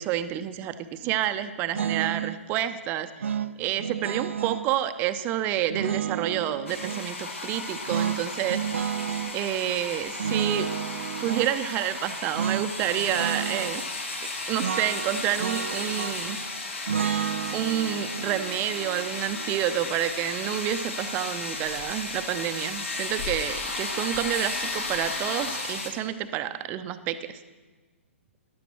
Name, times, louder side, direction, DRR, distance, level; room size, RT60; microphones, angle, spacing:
voice 1, 0.0-3.1 3.6-8.7 9.3-10.7 11.2-13.8 14.5-16.4 17.5-27.4, right 11 dB, 25° right, 11 dB, 0.6 m, -29 dB
sound 1, 1.7-2.4 3.2-4.7 5.7-7.1 7.9-9.4 10.2-11.5 12.3-12.7 13.0-13.8 14.6-16.4 16.9-19.9, right 8 dB, 65° right, 0.4 m, -31 dB
sound 2, 6.7-25.9, left 3 dB, 70° left, 2.2 m, -34 dB
sound 3, 9.7-12.2 13.7-17.1, left 1 dB, 90° left, 2.5 m, -54 dB
15.0 x 11.5 x 4.4 m, 1.3 s
figure-of-eight pair, 120°, 7 cm